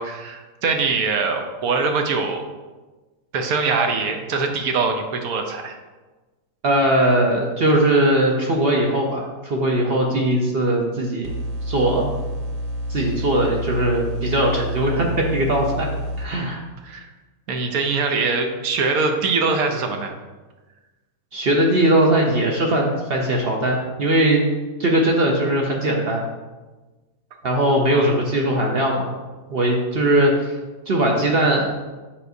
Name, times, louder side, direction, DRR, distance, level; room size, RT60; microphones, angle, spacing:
voice 1, 0.0-2.4 3.3-5.8 16.8-17.1 17.5-20.1 27.9-28.1, right 4 dB, 70° right, 4 dB, 1.1 m, -23 dB
voice 2, 6.6-11.3 11.6-12.1 12.9-15.9 16.2-16.7 21.3-24.4 24.8-26.2 27.4-29.1 29.5-30.6 30.9-31.7, right 1 dB, 50° right, 0 dB, 0.7 m, -20 dB
sound 1, 11.2-16.2, equal, 90° right, 1.3 m, -29 dB
7.3 x 5.2 x 2.7 m, 1.2 s
omnidirectional pair, 1.7 m